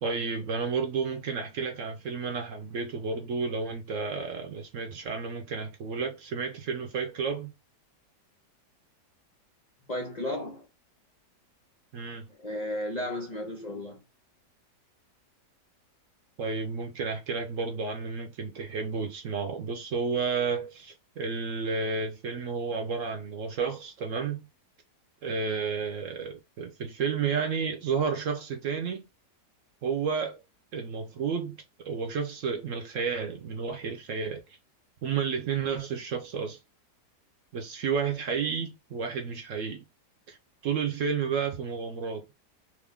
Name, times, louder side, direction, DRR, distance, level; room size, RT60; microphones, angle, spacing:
voice 1, 0.0-7.5 11.9-12.3 16.4-24.5 25.2-29.0 29.8-30.4 30.7-31.6 31.8-34.4 35.0-36.6 37.5-39.8 40.3-40.4 40.6-42.2, right 5 dB, 65° right, 0.8 m, -31 dB
voice 2, 9.9-10.6 12.4-14.0, left 1 dB, 80° left, 0.3 m, -34 dB
3.0 x 2.5 x 3.5 m
omnidirectional pair, 1.8 m